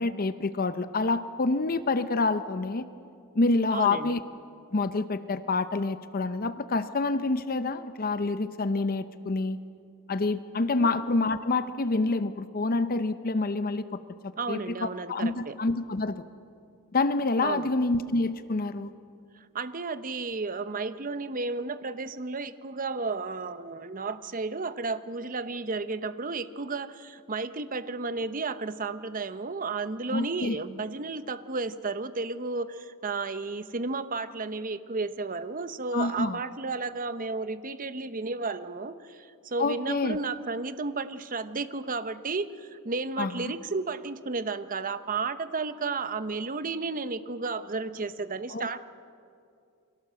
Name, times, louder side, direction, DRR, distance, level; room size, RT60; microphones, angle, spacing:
voice 1, 0.0-2.9 3.3-4.2 4.7-9.6 10.1-14.0 14.5-16.2 16.9-18.9 30.1-30.6 35.9-36.4 39.6-40.2 43.2-43.5 48.5-48.7, left 3 dB, 40° left, 12 dB, 0.7 m, -27 dB
voice 2, 3.7-4.1 10.8-10.9 14.4-15.6 17.4-17.7 19.3-48.8, right 3 dB, 40° right, 12 dB, 0.9 m, -33 dB
29.0 x 23.0 x 7.6 m, 2.5 s
head